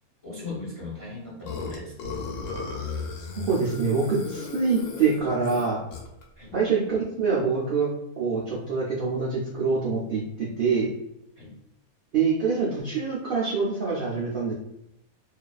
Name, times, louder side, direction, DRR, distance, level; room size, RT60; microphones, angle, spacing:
voice 1, 0.2-1.9 6.4-6.5 11.4-11.5, left 3 dB, 35° left, -5 dB, 0.6 m, -38 dB
Burping eructation, 1.5-6.2, left 4 dB, 90° left, 1.1 m, -35 dB
voice 2, 3.2-5.8 6.5-10.9 12.1-14.5, right 5 dB, 85° right, -6 dB, 0.4 m, -25 dB
2.6 x 2.3 x 2.3 m, 0.79 s
omnidirectional pair, 1.6 m